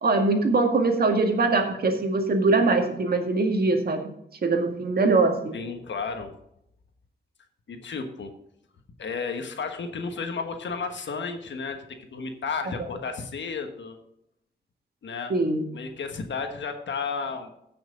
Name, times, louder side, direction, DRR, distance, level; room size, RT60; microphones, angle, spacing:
voice 1, 0.0-4.1 4.4-5.6 12.7-12.8 15.3-15.6, right 3 dB, 55° right, 4 dB, 2.0 m, -22 dB
voice 2, 5.5-6.3 7.7-8.3 9.0-14.0 15.0-15.3 15.7-17.5, left 5 dB, 90° left, 5 dB, 1.4 m, -33 dB
15.5 x 6.1 x 3.9 m, 0.77 s
wide cardioid pair, 150°, 18 cm